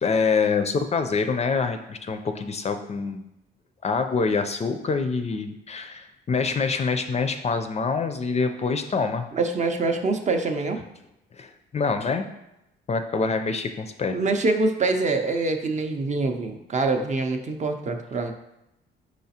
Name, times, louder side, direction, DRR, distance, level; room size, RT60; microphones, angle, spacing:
voice 1, 0.0-3.3 3.8-9.3 11.4-12.3 12.9-14.2, left 4 dB, 35° left, 7 dB, 0.4 m, -25 dB
voice 2, 9.3-10.8 14.1-18.3, right 3 dB, 35° right, 5 dB, 0.5 m, -25 dB
4.8 x 4.0 x 2.8 m, 0.85 s
cardioid pair, 90°, 20 cm